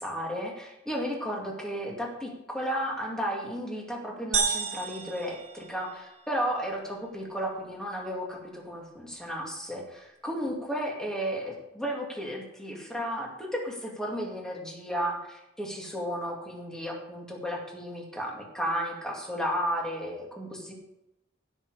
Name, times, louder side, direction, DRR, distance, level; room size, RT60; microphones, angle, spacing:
voice 1, 0.0-20.7, equal, 5° left, -2 dB, 2.4 m, -33 dB
sound 1, 4.3-6.3, right 5 dB, 35° right, 1.5 m, -31 dB
16.0 x 6.4 x 4.9 m, 0.90 s
head